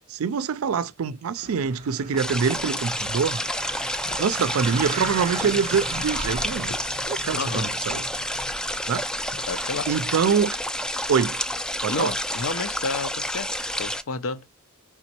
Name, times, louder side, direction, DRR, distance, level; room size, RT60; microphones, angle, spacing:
voice 1, 0.1-3.4 4.2-6.8 7.0-8.0 8.9-9.0 9.9-10.6 11.1-11.4 11.8-12.1, right 6 dB, 75° right, 0.4 m, -25 dB
sound 1, 1.1-10.4, left 2 dB, 90° left, 1.5 m, -49 dB
sound 2, 1.3-10.1, right 3 dB, 35° right, 0.7 m, -38 dB
sound 3, 2.2-14.0, left 1 dB, 5° left, 0.3 m, -29 dB
voice 2, 7.4-7.7 9.5-9.9 11.9-13.5 13.8-14.4, left 4 dB, 70° left, 0.6 m, -30 dB
5.1 x 3.5 x 2.8 m
head